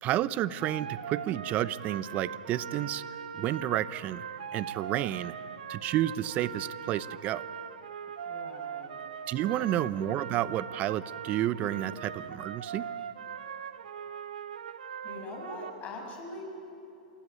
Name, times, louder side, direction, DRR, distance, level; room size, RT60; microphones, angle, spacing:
voice 1, 0.0-3.0 3.3-4.2 4.5-5.4 5.7-7.4 9.3-12.9, right 13 dB, 35° right, 17 dB, 0.7 m, -30 dB
sound 1, 0.6-15.7, right 7 dB, 75° right, 1.1 m, -40 dB
voice 2, 8.2-9.0 9.6-9.8 15.0-16.4, left 3 dB, 30° left, 1 dB, 7.1 m, -42 dB
27.5 x 16.0 x 9.6 m, 2.8 s
hypercardioid pair, 110°, 4 cm